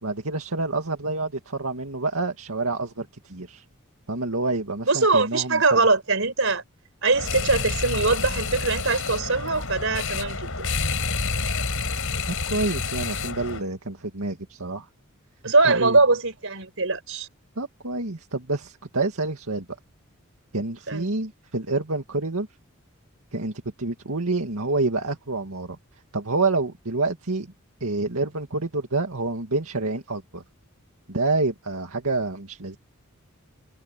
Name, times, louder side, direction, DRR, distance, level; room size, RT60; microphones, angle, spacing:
voice 1, 0.0-3.6 4.1-5.8 12.5-14.9 15.4-16.0 17.6-19.6 20.5-22.5 23.3-25.8 26.1-27.5 27.8-30.4 31.1-32.8, right 3 dB, 80° right, 2.2 m, -28 dB
voice 2, 4.9-6.6 7.0-10.7 15.4-17.3 20.9-21.2, right 3 dB, 65° right, 5.3 m, -22 dB
sound 1, 7.1-13.6, left 4 dB, 65° left, 5.8 m, -28 dB
head